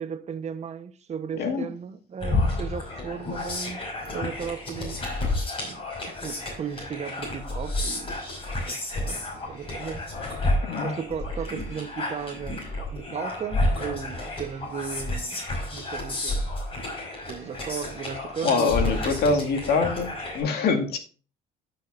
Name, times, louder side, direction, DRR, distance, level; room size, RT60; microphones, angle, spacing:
voice 1, 0.0-5.0 5.6-8.2 8.6-10.1 10.8-15.4 15.7-16.5 17.3-19.1 19.5-19.9, right 7 dB, 40° right, 1.0 m, -36 dB
sound 1, 2.2-20.4, left 2 dB, 30° left, 5.3 m, -30 dB
voice 2, 10.6-10.9 18.4-20.1 20.3-21.0, left 4 dB, 70° left, 2.2 m, -24 dB
14.5 x 6.4 x 2.6 m
cardioid pair, 110°, 17 cm